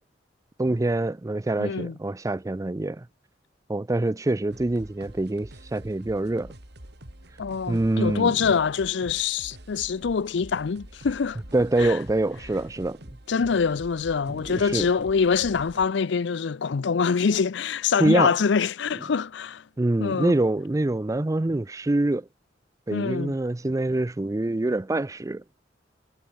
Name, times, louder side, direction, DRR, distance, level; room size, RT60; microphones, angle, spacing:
voice 1, 0.6-3.1 3.7-6.5 7.7-8.3 11.5-13.0 14.3-14.9 18.0-18.3 19.8-22.3 22.9-25.6, right 2 dB, 15° right, 0.4 m, -25 dB
voice 2, 1.6-1.9 7.4-11.4 11.8-12.0 13.3-19.6 20.0-20.3 22.9-23.3, left 5 dB, 65° left, 0.5 m, -25 dB
sound 1, 4.5-15.9, right 1 dB, 60° right, 4.0 m, -46 dB
head